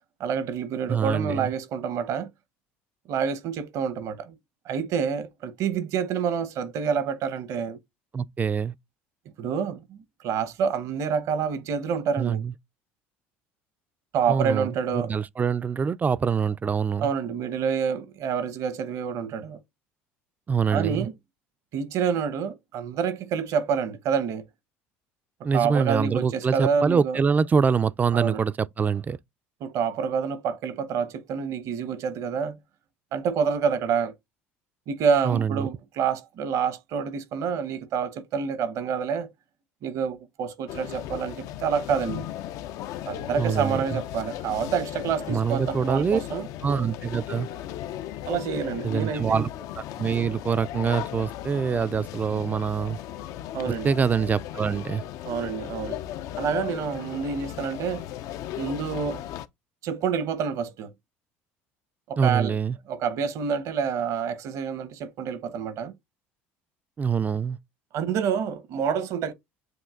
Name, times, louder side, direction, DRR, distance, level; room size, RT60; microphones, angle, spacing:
voice 1, 0.2-2.3 3.1-4.4 4.7-7.8 9.4-12.4 14.1-15.1 17.0-19.6 20.7-21.1 21.7-24.4 25.5-27.2 28.1-28.4 29.6-32.6 33.1-34.1 34.9-39.3 39.8-42.2 43.1-46.5 48.3-49.5 53.5-53.9 55.2-56.0 56.4-58.1 58.6-59.2 59.8-60.9 62.1-62.6 62.9-65.9 67.9-69.3, right 6 dB, 60° right, 0.9 m, -28 dB
voice 2, 0.9-1.5 8.1-8.7 12.2-12.5 14.3-17.1 20.5-21.1 25.4-29.2 35.2-35.7 43.4-44.0 45.3-46.2 46.6-47.5 48.8-49.5 50.0-53.0 53.7-55.0 62.2-62.8 67.0-67.6, right 6 dB, 25° right, 0.4 m, -25 dB
sound 1, 40.7-59.5, left 12 dB, 65° left, 0.4 m, -36 dB
7.8 x 2.8 x 2.3 m
hypercardioid pair, 75°, 6 cm